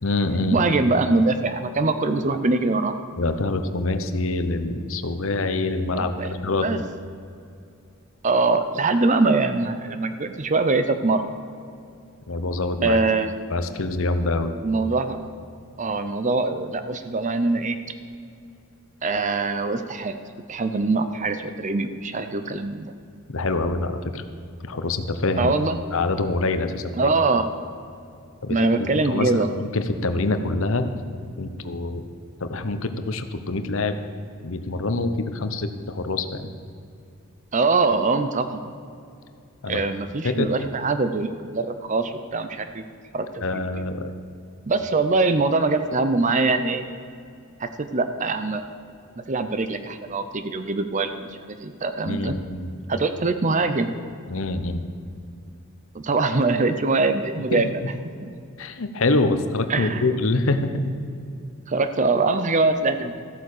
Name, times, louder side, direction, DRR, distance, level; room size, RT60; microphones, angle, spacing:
voice 1, 0.0-0.6 3.2-6.8 12.3-13.0 13.5-14.5 23.3-24.2 24.6-25.5 25.9-27.1 28.4-28.6 29.0-30.8 31.4-32.0 32.4-34.0 34.4-36.5 39.6-39.8 40.2-40.5 43.4-44.1 52.0-52.7 54.3-54.8 57.5-57.6 58.6-60.9, left 2 dB, 60° left, 8 dB, 0.9 m, -25 dB
voice 2, 0.5-2.9 5.9-6.3 6.6-6.8 8.2-11.2 12.8-13.3 14.6-15.3 15.8-17.8 19.0-20.2 20.5-22.9 25.4-25.8 27.0-27.5 28.5-29.5 37.5-38.6 39.7-42.8 43.1-43.6 44.7-46.8 47.6-48.7 49.3-52.4 52.9-53.9 55.9-57.7 58.2-58.3 59.7-60.1 61.7-63.2, right 3 dB, 35° right, 9 dB, 0.6 m, -23 dB
14.0 x 8.4 x 6.6 m, 2.5 s
head